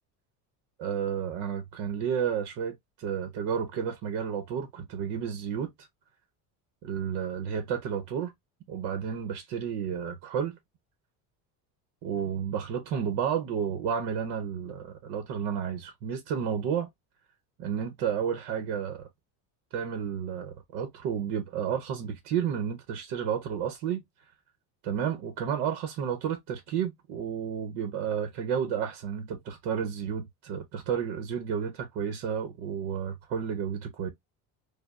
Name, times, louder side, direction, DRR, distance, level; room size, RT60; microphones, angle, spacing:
voice 1, 0.8-5.9 6.8-8.3 8.7-10.6 12.0-16.9 17.6-19.1 19.7-24.0 24.8-34.1, right 8 dB, 70° right, 0.9 m, -31 dB
5.1 x 2.2 x 2.4 m
cardioid pair, 160°, 41 cm